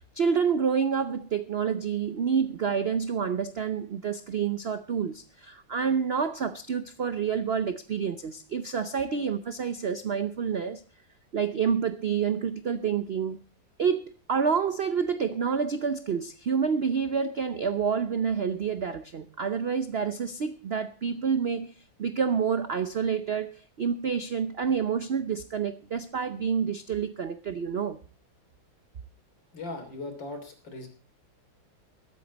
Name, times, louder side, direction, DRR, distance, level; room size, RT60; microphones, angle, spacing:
voice 1, 0.0-10.8 11.3-13.4 13.8-21.7 22.0-28.0, right 6 dB, 75° right, 0.5 m, -28 dB
voice 2, 29.5-30.9, left 2 dB, 75° left, 3.9 m, -38 dB
21.0 x 8.7 x 4.0 m
omnidirectional pair, 2.0 m